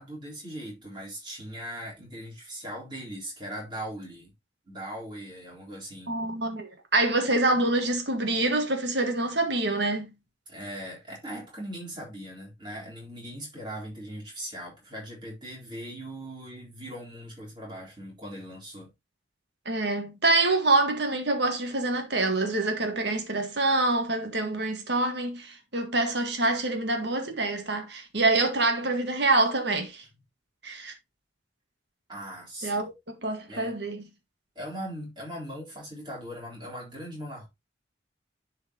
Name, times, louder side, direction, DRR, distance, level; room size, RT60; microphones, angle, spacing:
voice 1, 0.0-4.3 4.7-6.1 10.5-18.9 32.1-32.9 33.5-33.7 34.6-37.5, equal, 25° right, 3.8 m, -39 dB
voice 2, 6.1-10.1 19.7-30.0 30.6-30.9 32.6-32.9 33.2-34.0, right 2 dB, 65° right, 1.8 m, -26 dB
11.5 x 4.6 x 2.9 m
head